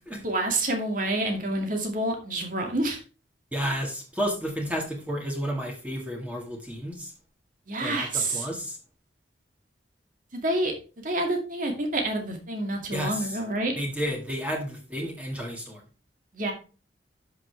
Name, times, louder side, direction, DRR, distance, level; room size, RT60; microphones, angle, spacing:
voice 1, 0.1-3.0 7.7-8.5 10.3-10.7 11.0-13.7 16.3-16.5, right 1 dB, 50° right, 3 dB, 2.3 m, -28 dB
voice 2, 3.5-7.1 7.8-8.8 12.9-13.2 13.8-15.8, equal, 10° right, 0 dB, 1.9 m, -31 dB
10.5 x 6.4 x 3.4 m, 0.34 s
head